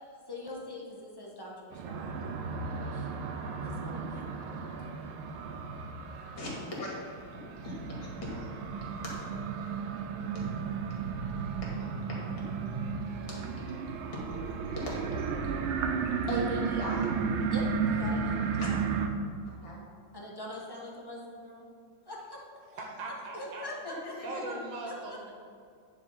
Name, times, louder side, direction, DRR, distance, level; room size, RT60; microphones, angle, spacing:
voice 1, 0.3-2.3 2.9-3.1 3.6-4.3 17.5-18.8 20.1-21.7 22.1-22.4 22.7-22.8 23.4-23.9 24.9-25.2, left 1 dB, 15° left, -3 dB, 1.0 m, -43 dB
sound 1, 1.7-19.1, right 5 dB, 90° right, 1.5 m, -34 dB
voice 2, 6.3-6.9 7.6-7.7 8.0-8.5 9.1-9.2 13.3-13.4 14.0-15.0 15.3-15.4 16.3-17.1 18.6-18.8 19.4-19.8 23.8-23.9, left 1 dB, 70° left, -4 dB, 2.9 m, -38 dB
voice 3, 22.7-23.7 24.2-25.3, right 2 dB, 65° right, 0 dB, 1.7 m, -39 dB
10.0 x 4.6 x 5.5 m, 2.2 s
omnidirectional pair, 2.2 m